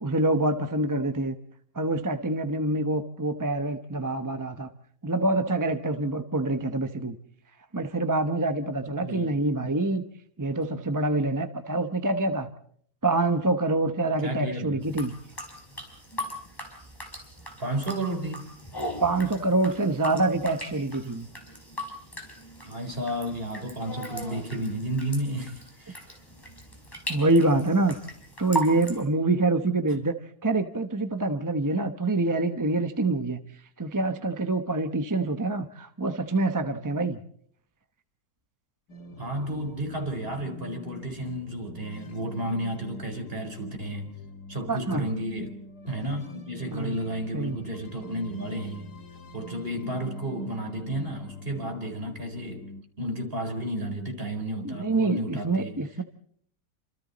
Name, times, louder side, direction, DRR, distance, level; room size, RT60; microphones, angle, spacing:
voice 1, 0.0-1.4 1.7-4.7 5.0-7.2 7.7-10.0 10.4-12.5 13.0-15.1 19.0-21.3 27.1-28.0 28.4-30.1 30.4-33.4 33.8-37.2 44.7-45.1 46.7-47.0 47.3-47.6 54.6-56.0, right 2 dB, 15° right, 0.6 m, -26 dB
voice 2, 8.8-9.3 14.2-14.8 17.6-18.5 22.6-26.0 39.2-44.1 44.5-45.6 45.9-48.9 49.3-52.6 53.0-55.8, right 1 dB, 35° right, 4.6 m, -32 dB
sound 1, 14.8-29.0, right 1 dB, 10° left, 5.2 m, -39 dB
sound 2, 38.9-52.8, left 2 dB, 70° left, 2.2 m, -45 dB
29.0 x 26.5 x 4.2 m
omnidirectional pair, 1.8 m